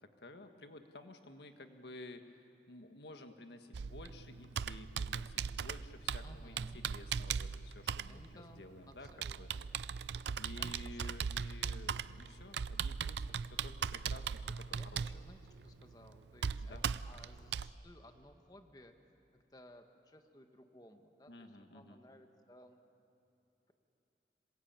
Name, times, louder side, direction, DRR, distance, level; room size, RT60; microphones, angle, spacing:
voice 1, 0.2-2.2 2.7-9.5 9.8-9.9 10.3-15.0 16.6-16.8 21.3-22.0, left 2 dB, 75° left, 7 dB, 1.5 m, -53 dB
Computer keyboard, 3.7-17.7, right 6 dB, 80° right, 0.5 m, -39 dB
voice 2, 6.2-6.8 8.0-9.6 10.6-11.2 14.7-18.9 19.3-22.8, left 1 dB, 20° left, 6 dB, 1.4 m, -59 dB
27.0 x 21.0 x 8.9 m, 2.9 s
head